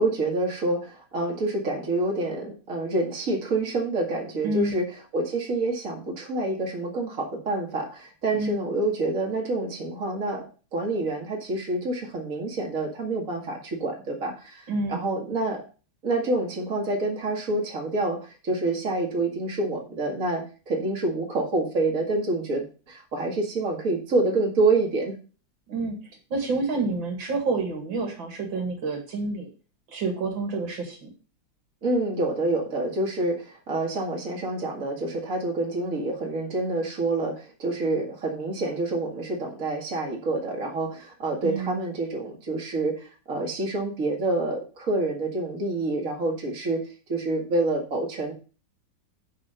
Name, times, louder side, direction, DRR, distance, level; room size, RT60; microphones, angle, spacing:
voice 1, 0.0-4.9 5.1-10.5 10.7-15.6 16.0-25.2 31.8-48.3, right 2 dB, 45° right, 1 dB, 2.3 m, -27 dB
voice 2, 4.4-4.8 8.3-8.6 14.7-15.1 25.7-26.0 26.3-29.5 29.9-31.1 41.4-41.8, right 3 dB, 80° right, 3 dB, 2.8 m, -28 dB
10.0 x 4.1 x 6.7 m, 0.36 s
omnidirectional pair, 2.1 m